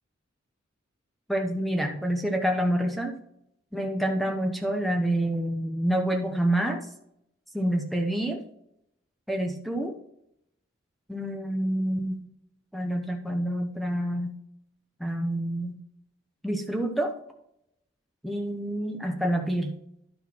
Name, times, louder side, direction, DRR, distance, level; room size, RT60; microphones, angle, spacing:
voice 1, 1.3-3.1 3.7-6.8 7.5-8.4 9.3-9.9 11.1-12.2 12.7-14.3 15.0-15.7 16.4-17.1 18.2-19.7, right 1 dB, ahead, 3 dB, 0.8 m, -27 dB
11.0 x 4.5 x 6.0 m, 0.76 s
head